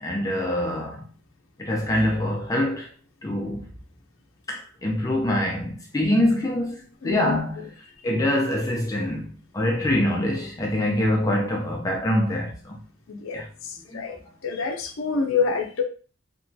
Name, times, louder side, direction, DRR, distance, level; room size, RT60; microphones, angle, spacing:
voice 1, 0.0-1.0 1.6-2.9 3.2-3.6 4.5-7.6 8.0-12.8 13.3-13.5 13.9-14.0, left 1 dB, 15° left, 0.4 m, -25 dB
voice 2, 7.0-7.7 8.0-8.1 13.1-15.8, left 5 dB, 85° left, 0.5 m, -28 dB
2.9 x 2.2 x 2.7 m
head